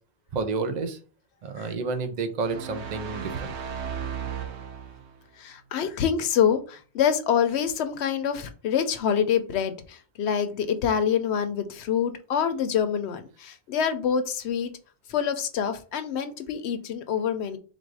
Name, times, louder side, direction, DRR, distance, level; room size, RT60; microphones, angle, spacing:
voice 1, 0.3-1.0 1.4-3.5, right 4 dB, 45° right, 0.7 m, -30 dB
sound 1, 2.4-5.2, right 7 dB, 85° right, 0.9 m, -35 dB
voice 2, 5.4-14.7 15.1-17.6, left 8 dB, 80° left, 0.8 m, -26 dB
3.8 x 2.5 x 4.6 m
omnidirectional pair, 1.1 m